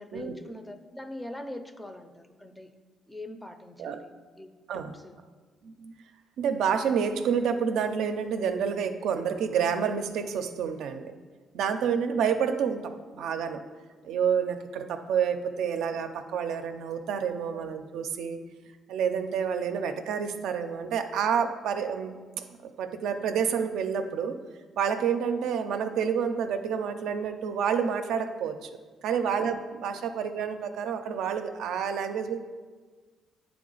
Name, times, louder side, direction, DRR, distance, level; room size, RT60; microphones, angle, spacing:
voice 1, 0.0-2.7 3.1-5.2 17.5-17.7, left 1 dB, 10° left, 8 dB, 0.5 m, -42 dB
voice 2, 5.6-5.9 6.4-11.2 11.5-13.6 14.0-18.4 18.9-22.4 22.8-24.4 24.8-28.7 29.0-32.4, right 7 dB, 85° right, 7 dB, 0.4 m, -29 dB
8.6 x 3.4 x 3.8 m, 1.4 s
cardioid pair, 90°, 0 cm